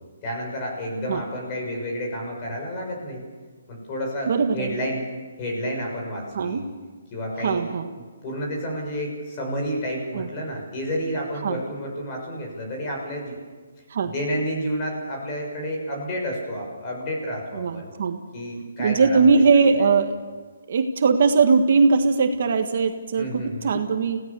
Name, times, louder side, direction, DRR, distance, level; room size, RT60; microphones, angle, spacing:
voice 1, 0.2-3.2 3.7-5.0 5.4-6.7 7.1-7.7 8.2-13.4 14.0-17.9 18.3-19.9 23.2-23.8, equal, 25° left, 0 dB, 6.4 m, -30 dB
voice 2, 4.3-4.8 6.3-6.6 7.4-7.9 10.1-10.3 11.4-11.6 13.9-14.1 17.5-18.2 18.8-20.2 20.7-24.2, right 4 dB, 50° right, 6 dB, 1.6 m, -20 dB
26.0 x 17.0 x 6.9 m, 1.4 s
hypercardioid pair, 165°, 0 cm